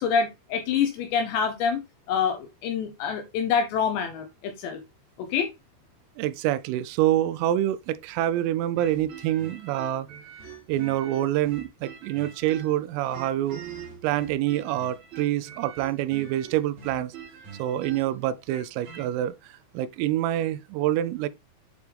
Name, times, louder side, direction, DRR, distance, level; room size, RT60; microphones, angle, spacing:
voice 1, 0.0-1.8 2.1-4.8 5.2-5.5, left 6 dB, 85° left, 2.5 m, -26 dB
voice 2, 6.2-10.1 10.7-13.6 14.0-17.1 17.6-21.3, right 13 dB, 85° right, 3.1 m, -26 dB
sound 1, 8.8-12.8 13.1-19.1, right 7 dB, 45° right, 2.7 m, -43 dB
8.5 x 4.6 x 3.4 m
omnidirectional pair, 6.0 m